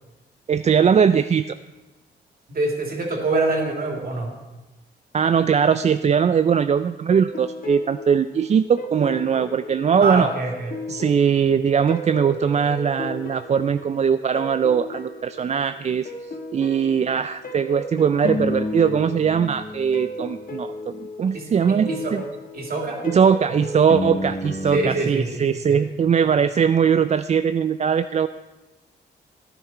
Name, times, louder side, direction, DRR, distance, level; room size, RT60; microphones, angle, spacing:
voice 1, 0.5-1.5 5.1-10.3 10.9-16.1 16.5-20.9 21.2-22.2 23.0-28.3, right 7 dB, 35° right, 11 dB, 0.4 m, -20 dB
voice 2, 2.5-4.3 10.0-10.7 21.3-21.4 21.7-22.1 22.5-23.0 24.7-25.4 25.7-25.8, right 2 dB, 50° right, 0 dB, 3.0 m, -25 dB
sound 1, 7.1-25.0, left 2 dB, 50° left, 1.4 m, -33 dB
14.5 x 10.0 x 4.5 m, 1.1 s
cardioid pair, 85°, 19 cm